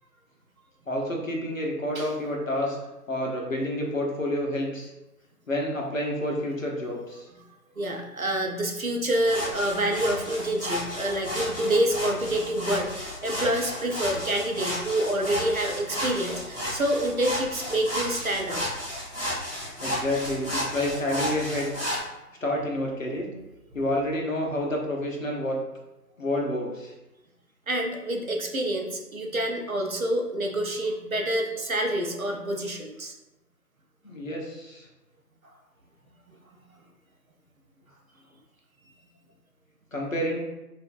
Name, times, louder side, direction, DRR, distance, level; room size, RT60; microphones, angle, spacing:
voice 1, 0.9-2.8 3.1-4.9 5.5-7.3 19.8-21.7 22.4-23.3 23.7-25.6 26.2-26.9 34.0-34.8 39.9-40.4, left 1 dB, 55° left, -1 dB, 0.8 m, -29 dB
voice 2, 7.8-18.6 27.7-33.1, right 1 dB, 60° right, 2 dB, 0.6 m, -27 dB
sound 1, 9.1-22.0, equal, 20° left, 1.4 m, -33 dB
4.5 x 2.5 x 2.4 m, 0.99 s
figure-of-eight pair, 180°, 48 cm